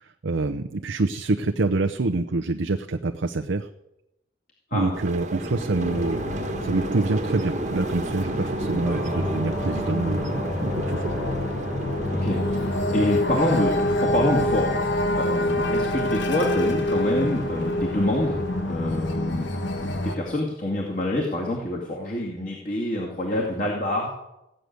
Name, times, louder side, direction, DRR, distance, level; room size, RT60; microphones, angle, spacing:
voice 1, 0.0-3.7 4.7-11.1, right 3 dB, 90° right, 5 dB, 0.7 m, -26 dB
sound 1, 4.9-18.7, right 1 dB, 40° right, 1.2 m, -34 dB
sound 2, 5.8-20.2, left 1 dB, 80° left, 1.6 m, -27 dB
sound 3, 8.8-18.4, left 1 dB, 5° right, 1.2 m, -36 dB
voice 2, 12.1-14.9 15.1-19.5 19.8-24.1, left 1 dB, 40° left, -2 dB, 2.2 m, -26 dB
16.0 x 6.7 x 9.3 m, 0.90 s
head